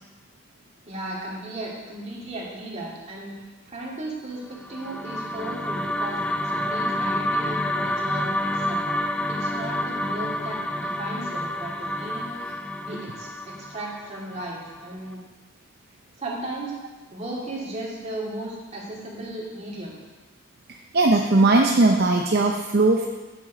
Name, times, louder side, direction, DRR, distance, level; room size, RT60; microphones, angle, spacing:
voice 1, 0.9-3.4 3.7-8.8 9.3-12.4 12.8-15.2 16.2-16.7 17.1-19.9, right 1 dB, 35° right, -4 dB, 2.5 m, -35 dB
sound 1, 4.5-14.8, left 1 dB, 5° left, 0.4 m, -28 dB
voice 2, 20.7-23.1, right 2 dB, 55° right, 2 dB, 0.6 m, -19 dB
8.9 x 7.3 x 5.1 m, 1.2 s
head